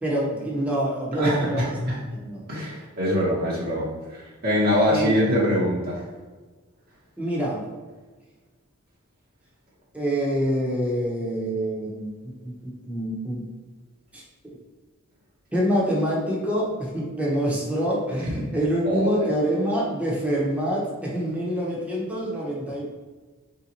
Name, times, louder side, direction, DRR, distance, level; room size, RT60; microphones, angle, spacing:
voice 1, 0.0-1.7 2.2-2.5 4.9-5.5 7.2-7.7 9.9-13.4 14.1-14.2 15.5-22.9, equal, 5° right, -5 dB, 0.9 m, -26 dB
voice 2, 1.1-2.0 2.5-6.0 18.8-19.3, equal, 45° right, -6 dB, 0.9 m, -24 dB
3.5 x 2.8 x 4.2 m, 1.3 s
head